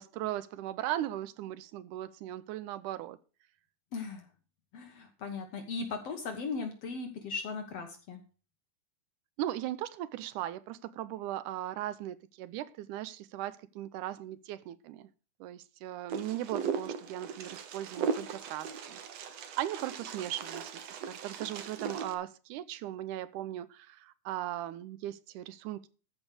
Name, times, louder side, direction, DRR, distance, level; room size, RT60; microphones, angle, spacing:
voice 1, 0.0-3.2 9.4-15.1 15.4-19.0 19.3-20.7 21.1-25.9, right 13 dB, 80° right, 2.2 m, -38 dB
voice 2, 3.9-4.2 4.7-8.2, left 4 dB, 60° left, 2.0 m, -38 dB
Wind, 16.1-22.1, right 6 dB, 65° right, 2.1 m, -38 dB
13.5 x 5.4 x 6.5 m
omnidirectional pair, 3.6 m